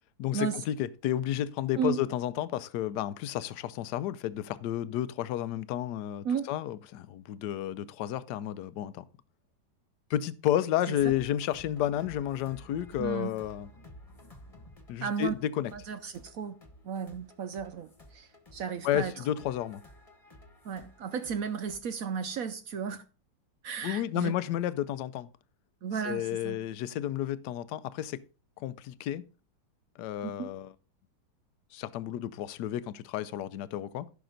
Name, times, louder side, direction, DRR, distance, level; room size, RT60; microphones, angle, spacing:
voice 1, 0.2-9.0 10.1-13.7 14.9-15.7 18.8-19.8 23.8-25.3 26.0-28.2 28.6-29.2 30.0-30.7 31.7-34.1, left 12 dB, 70° left, 1.1 m, -31 dB
sound 1, 11.0-21.8, left 1 dB, 20° left, 1.4 m, -53 dB
voice 2, 13.0-13.3 15.0-15.3 15.7-16.6 16.8-19.1 20.6-23.0 23.6-24.3 25.8-26.6 30.2-30.5, right 6 dB, 65° right, 0.9 m, -34 dB
15.5 x 5.9 x 3.9 m
omnidirectional pair, 2.0 m